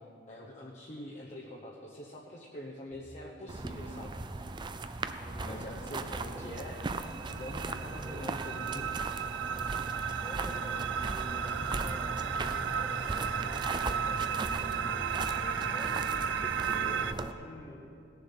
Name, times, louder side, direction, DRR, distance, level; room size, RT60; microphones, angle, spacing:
voice 1, 0.3-4.2 5.4-6.8 7.3-9.0, left 1 dB, 40° left, -2 dB, 0.9 m, -44 dB
sound 1, 2.9-11.0, equal, 65° left, 3.1 m, -54 dB
sound 2, 3.5-17.3, right 3 dB, 25° right, 0.4 m, -38 dB
voice 2, 5.2-5.7 6.2-6.6 10.1-16.0 16.5-17.9, equal, 20° left, -1 dB, 1.5 m, -48 dB
sound 3, 6.5-17.1, right 7 dB, 90° right, 0.4 m, -34 dB
17.0 x 7.0 x 5.7 m, 2.6 s
head